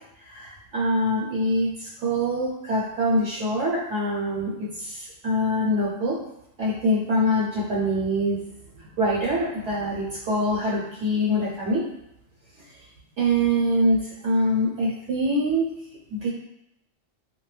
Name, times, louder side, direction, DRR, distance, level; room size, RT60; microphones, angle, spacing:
voice 1, 0.3-6.2 6.6-8.4 9.0-11.8 13.2-15.7 16.1-16.3, equal, 70° right, -5 dB, 0.9 m, -24 dB
2.2 x 2.1 x 3.1 m, 0.81 s
omnidirectional pair, 1.3 m